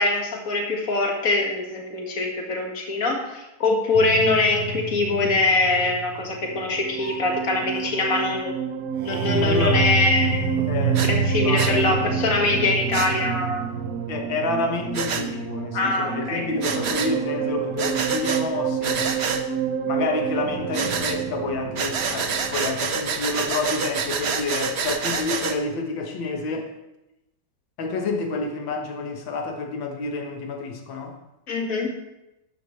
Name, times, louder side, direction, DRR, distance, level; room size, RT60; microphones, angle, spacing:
voice 1, 0.0-8.5 9.0-10.7 11.0-13.6 15.7-16.4 31.5-31.9, left 2 dB, 45° left, 1 dB, 2.2 m, -23 dB
sound 1, 3.9-22.8, right 5 dB, 65° right, 1.5 m, -28 dB
voice 2, 9.4-9.9 10.7-12.1 14.1-19.1 19.9-26.7 27.8-31.2, left 3 dB, 85° left, 3 dB, 2.0 m, -29 dB
Breathing, 10.9-11.1 11.6-11.7 12.9-13.1 14.9-15.2 16.6-17.1 17.8-18.4 18.8-19.4 20.7-21.2 21.8-25.6, right 5 dB, 50° right, 0.8 m, -27 dB
13.0 x 11.5 x 3.2 m, 0.91 s
omnidirectional pair, 2.0 m